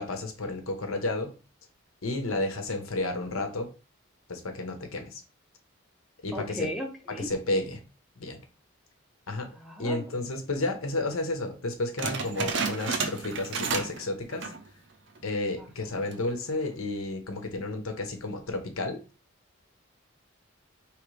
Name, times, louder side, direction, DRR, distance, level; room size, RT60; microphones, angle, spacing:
voice 1, 0.0-1.3 2.0-3.7 4.3-5.2 6.2-6.7 7.2-7.8 8.2-8.4 9.3-9.5 9.8-14.5 15.2-19.0, left 2 dB, 85° left, 5 dB, 1.0 m, -31 dB
voice 2, 6.3-7.3 9.5-10.0 15.6-16.0, equal, ahead, 2 dB, 0.7 m, -37 dB
sound 1, 12.0-14.0 14.3-14.7 15.2-15.3 15.9-16.3, right 4 dB, 55° right, 0.7 m, -31 dB
4.9 x 3.3 x 3.2 m, 0.33 s
head